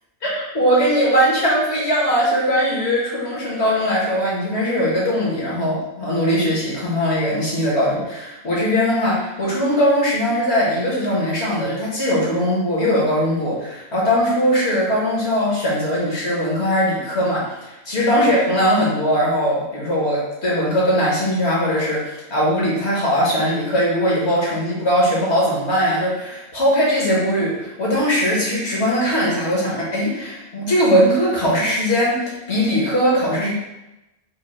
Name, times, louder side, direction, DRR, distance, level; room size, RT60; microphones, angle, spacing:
voice 1, 0.2-33.5, equal, 65° left, -5 dB, 1.7 m, -20 dB
3.7 x 2.9 x 4.2 m, 0.94 s
omnidirectional pair, 1.3 m